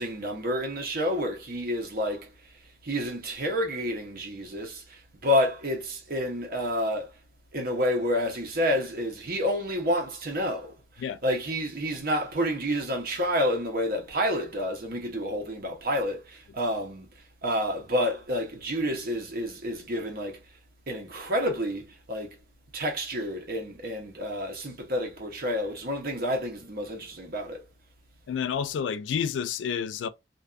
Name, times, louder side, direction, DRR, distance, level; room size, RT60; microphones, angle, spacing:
voice 1, 0.0-2.3 2.8-7.1 7.5-10.7 11.2-17.1 17.4-20.4 20.9-22.3 22.7-27.6, equal, 55° right, 0.8 m, -29 dB
voice 2, 28.3-30.1, left 7 dB, 80° left, 0.3 m, -29 dB
2.5 x 2.2 x 2.4 m
head